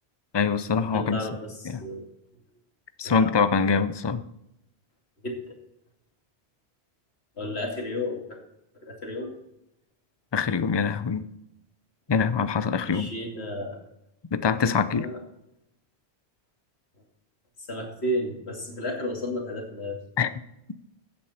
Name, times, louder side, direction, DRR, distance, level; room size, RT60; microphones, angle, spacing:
voice 1, 0.3-1.2 1.6-1.8 3.0-4.2 10.3-11.3 12.1-13.1 14.3-15.1 20.2-20.3, left 5 dB, 30° left, 13 dB, 0.5 m, -24 dB
voice 2, 0.9-2.1 3.0-3.3 5.2-5.5 7.4-8.4 8.8-9.3 12.9-13.8 14.9-15.2 17.6-20.0, left 1 dB, 70° left, 2 dB, 2.8 m, -32 dB
15.5 x 8.8 x 4.3 m, 0.84 s
omnidirectional pair, 1.1 m